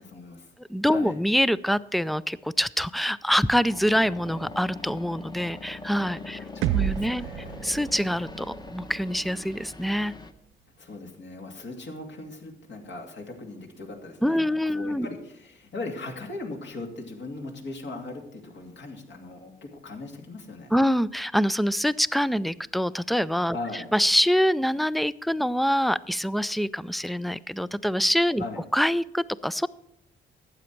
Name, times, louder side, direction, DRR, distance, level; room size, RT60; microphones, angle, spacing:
voice 1, 0.0-0.5 0.8-1.2 6.3-7.6 10.8-20.8 23.5-23.9 28.4-28.6, left 2 dB, 65° left, 1 dB, 2.5 m, -39 dB
voice 2, 0.7-6.4 6.7-7.3 7.6-10.1 14.2-15.1 20.7-23.6 23.9-28.4 28.7-29.7, equal, ahead, 18 dB, 0.3 m, -25 dB
sound 1, 3.7-10.3, left 3 dB, 20° left, 0.9 m, -42 dB
sound 2, 6.6-10.5, right 13 dB, 80° right, 0.5 m, -32 dB
12.5 x 8.6 x 4.5 m, 0.76 s
cardioid pair, 90°, 20 cm